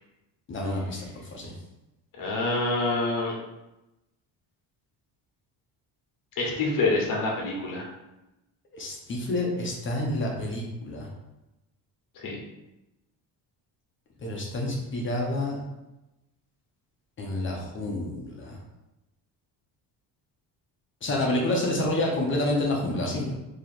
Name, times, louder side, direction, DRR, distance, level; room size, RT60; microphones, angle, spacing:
voice 1, 0.5-1.5 8.7-11.1 14.2-15.6 17.2-18.6 21.0-23.3, left 1 dB, 30° left, -1 dB, 0.6 m, -28 dB
voice 2, 2.2-3.3 6.4-7.9 12.1-12.4, left 2 dB, 50° left, -2 dB, 1.2 m, -26 dB
3.0 x 2.8 x 4.1 m, 0.96 s
cardioid pair, 165°, 41 cm